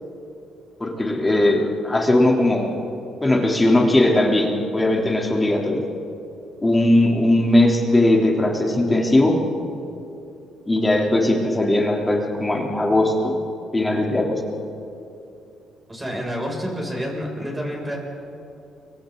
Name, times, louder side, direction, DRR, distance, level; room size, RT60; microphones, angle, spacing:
voice 1, 0.8-2.7 3.2-5.8 6.6-9.3 10.7-13.4 13.7-14.4, left 1 dB, 15° left, -1 dB, 3.5 m, -19 dB
voice 2, 15.9-18.0, equal, 15° right, -1 dB, 6.8 m, -28 dB
29.5 x 24.5 x 4.0 m, 2.8 s
cardioid pair, 90°, 0 cm